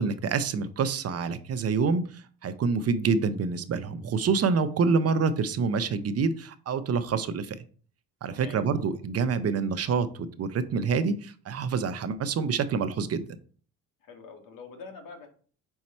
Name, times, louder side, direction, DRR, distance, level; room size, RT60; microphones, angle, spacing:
voice 1, 0.0-7.6 8.2-13.2, right 5 dB, 45° right, 11 dB, 0.7 m, -27 dB
voice 2, 8.3-8.9 14.0-15.3, left 4 dB, 70° left, 4 dB, 1.7 m, -45 dB
5.3 x 4.6 x 4.3 m, 0.43 s
cardioid pair, 95°, 34 cm